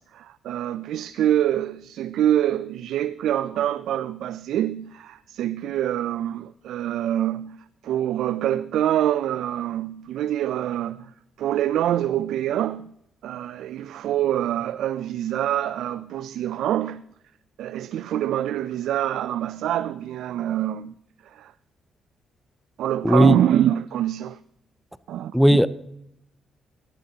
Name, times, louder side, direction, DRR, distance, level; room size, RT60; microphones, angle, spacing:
voice 1, 0.0-7.6 7.8-11.1 11.4-12.9 13.2-17.0 17.6-20.9 21.2-21.5 22.8-24.4 25.1-25.4, right 11 dB, 80° right, 0.3 m, -25 dB
voice 2, 23.0-23.3 25.3-25.7, equal, ahead, 0.5 m, -15 dB
13.5 x 11.5 x 2.8 m
cardioid pair, 90°, 0 cm